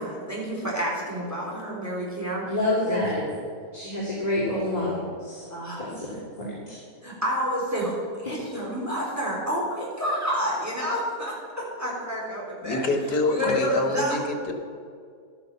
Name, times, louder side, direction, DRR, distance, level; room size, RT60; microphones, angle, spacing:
voice 1, 0.0-2.5 2.8-3.3 5.5-5.9 7.0-12.8 13.3-14.2, equal, 10° right, -4 dB, 3.8 m, -29 dB
voice 2, 2.4-3.2 3.7-5.5 5.8-6.8 8.2-8.3, left 1 dB, 25° left, -6 dB, 2.5 m, -28 dB
voice 3, 12.6-14.5, left 3 dB, 90° left, 5 dB, 2.1 m, -26 dB
12.0 x 9.9 x 6.9 m, 2.2 s
omnidirectional pair, 1.7 m